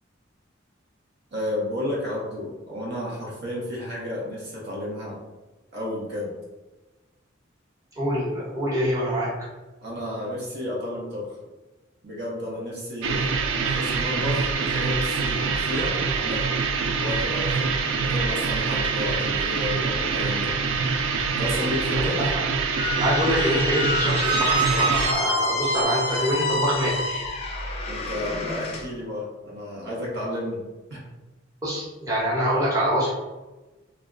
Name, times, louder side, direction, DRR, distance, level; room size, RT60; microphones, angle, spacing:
voice 1, 1.3-5.2 5.7-6.4 9.8-11.4 12.0-16.5 17.0-20.6 21.4-22.2 27.9-31.0, left 1 dB, 60° right, -4 dB, 0.7 m, -32 dB
voice 2, 8.0-9.3 22.3-22.4 23.0-27.2 31.6-33.1, equal, 20° right, -7 dB, 0.8 m, -25 dB
sound 1, 13.0-25.1, right 5 dB, 85° right, 0.3 m, -25 dB
Squeak, 22.7-28.8, equal, 30° left, 0.4 m, -27 dB
2.2 x 2.0 x 3.5 m, 1.1 s
head